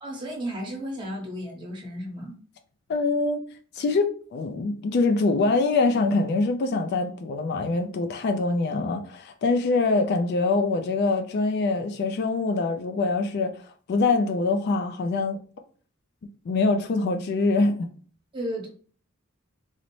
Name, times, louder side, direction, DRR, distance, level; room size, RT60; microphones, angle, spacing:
voice 1, 0.0-2.3 18.3-18.7, equal, 20° right, 0.9 m, -33 dB
voice 2, 2.9-3.4 3.8-13.6 13.9-15.4 16.5-17.9, left 3 dB, 50° left, 0.3 m, -24 dB
3.9 x 2.0 x 3.0 m
head